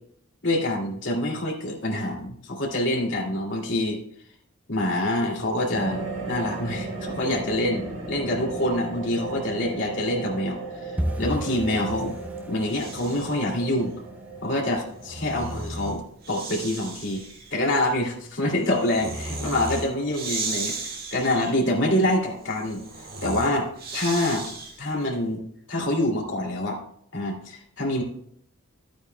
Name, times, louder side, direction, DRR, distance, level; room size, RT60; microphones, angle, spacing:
voice 1, 0.4-4.0 4.7-12.1 12.5-13.9 14.4-16.0 16.3-17.2 17.5-20.7 21.1-22.8 23.2-25.4 25.7-26.8 27.1-28.0, left 1 dB, 60° left, -2 dB, 2.4 m, -26 dB
sound 1, 5.7-15.5, right 3 dB, 75° right, 3.7 m, -36 dB
sound 2, 11.0-21.7 21.9-22.7 22.9-23.2 23.5-23.9 24.1-24.3 24.8-25.3 25.6-25.7 26.2-26.3, equal, 5° right, 0.4 m, -38 dB
Breathing, 11.5-13.5 14.7-25.0, right 3 dB, 45° right, 1.8 m, -36 dB
13.0 x 9.2 x 2.2 m, 0.67 s
head